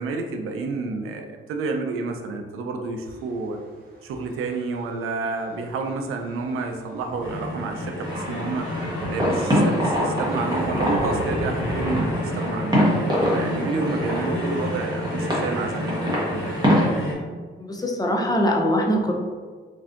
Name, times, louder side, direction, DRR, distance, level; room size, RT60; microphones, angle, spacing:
voice 1, 0.0-3.6 4.0-8.7 9.1-16.4, right 4 dB, 85° right, 4 dB, 0.4 m, -30 dB
sound 1, 6.4-6.7 7.0-7.6 8.1-8.2 8.7-9.4 9.7-12.0, right 1 dB, 45° right, 0.9 m, -31 dB
sound 2, 7.2-17.1, left 1 dB, 70° left, 1.0 m, -30 dB
sound 3, 8.0-16.9, equal, 20° right, 1.1 m, -25 dB
voice 2, 17.6-19.1, equal, 20° left, 0 dB, 0.5 m, -22 dB
3.2 x 2.6 x 2.4 m, 1.5 s
cardioid pair, 65°, 21 cm